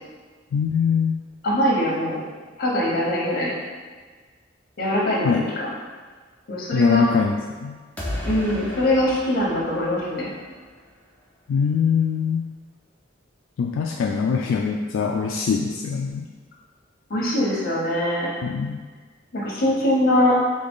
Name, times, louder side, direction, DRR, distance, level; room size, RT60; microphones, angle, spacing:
voice 1, 0.5-1.2 5.2-5.5 6.7-7.8 11.5-12.5 13.6-16.3 18.4-18.8, left 6 dB, 80° left, 1 dB, 0.3 m, -22 dB
voice 2, 1.4-2.2 2.6-3.5 4.8-5.7 6.5-7.0 8.2-10.3 17.1-18.3 19.3-20.4, left 1 dB, 50° left, -4 dB, 1.1 m, -22 dB
sound 1, 8.0-10.9, left 1 dB, 5° left, 0.6 m, -34 dB
3.8 x 3.3 x 3.7 m, 1.5 s
head